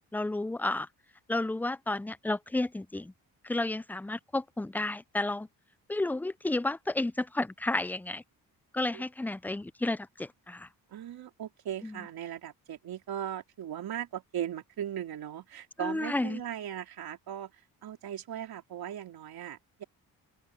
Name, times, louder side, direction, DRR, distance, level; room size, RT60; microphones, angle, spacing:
voice 1, 0.1-0.9 1.3-3.1 3.4-5.5 5.9-8.2 8.7-10.7 11.8-12.0 15.8-16.4, left 2 dB, 5° left, 0.5 m, -32 dB
voice 2, 10.9-19.8, right 10 dB, 75° right, 3.6 m, -38 dB
open air
cardioid pair, 95°, 37 cm